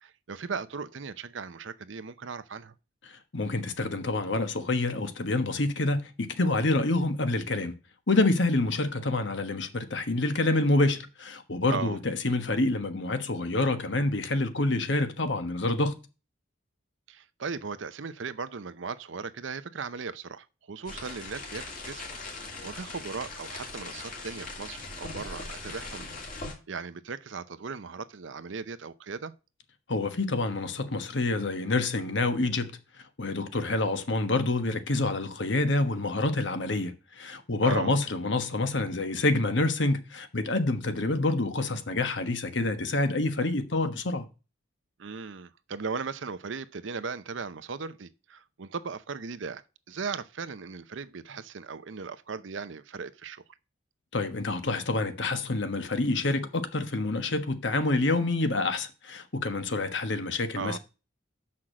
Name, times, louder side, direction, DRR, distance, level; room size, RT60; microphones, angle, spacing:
voice 1, 0.0-2.7 11.7-12.0 17.1-22.1 22.6-26.1 26.7-29.3 37.6-38.0 45.0-53.4 60.5-60.8, right 5 dB, 70° right, 0.6 m, -37 dB
voice 2, 3.3-7.7 8.1-15.9 29.9-32.7 33.2-44.2 54.1-60.8, left 2 dB, 65° left, 1.2 m, -27 dB
sound 1, 20.9-26.5, left 3 dB, 40° left, 2.5 m, -40 dB
6.4 x 5.9 x 7.4 m
head